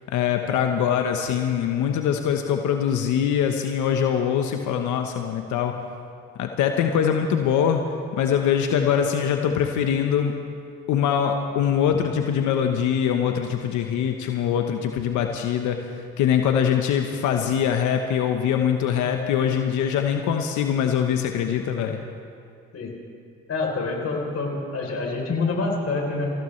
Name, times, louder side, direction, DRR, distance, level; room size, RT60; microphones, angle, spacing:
voice 1, 0.1-5.8 6.4-7.8 8.1-10.3 10.9-22.0, left 8 dB, 75° left, 5 dB, 1.1 m, -23 dB
voice 2, 23.5-26.3, left 3 dB, 50° left, 0 dB, 3.8 m, -26 dB
27.0 x 16.0 x 3.3 m, 2.5 s
hypercardioid pair, 55°, 30 cm